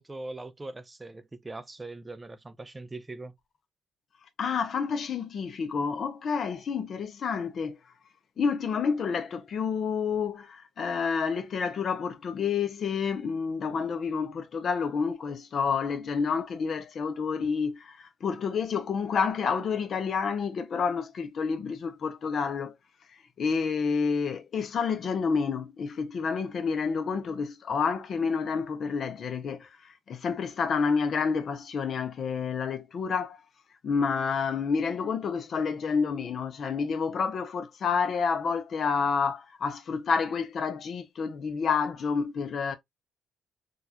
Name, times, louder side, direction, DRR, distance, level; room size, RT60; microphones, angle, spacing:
voice 1, 0.0-3.3, right 2 dB, 20° right, 0.4 m, -41 dB
voice 2, 4.4-7.8 8.4-22.7 23.4-29.7 30.1-33.4 33.8-42.7, left 5 dB, 55° left, 0.7 m, -29 dB
3.8 x 2.4 x 2.8 m
cardioid pair, 90°, 0 cm